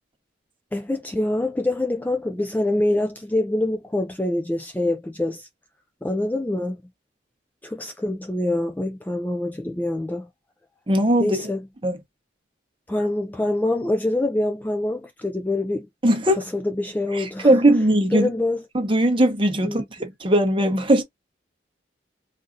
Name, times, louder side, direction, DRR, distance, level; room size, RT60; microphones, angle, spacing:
voice 1, 0.7-5.5 6.0-6.8 7.6-10.3 11.2-11.6 12.9-15.9 16.6-17.6 18.1-18.6 19.6-19.9, left 1 dB, 10° left, 0.3 m, -25 dB
voice 2, 10.9-11.5 11.8-12.0 16.0-16.4 17.1-18.3 18.7-21.0, right 1 dB, 30° right, 0.8 m, -19 dB
3.9 x 2.5 x 2.5 m
head